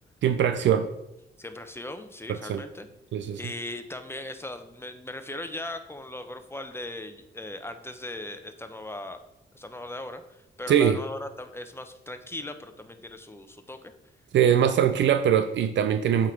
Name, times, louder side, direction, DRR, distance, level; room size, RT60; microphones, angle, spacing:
voice 1, 0.2-0.9 2.3-2.6 3.1-3.4 10.7-11.0 14.3-16.3, right 9 dB, 70° right, 9 dB, 0.5 m, -22 dB
voice 2, 1.4-2.9 3.4-9.2 9.5-13.9, left 1 dB, 10° left, 8 dB, 0.8 m, -38 dB
8.3 x 3.7 x 4.5 m, 0.88 s
cardioid pair, 65°, 20 cm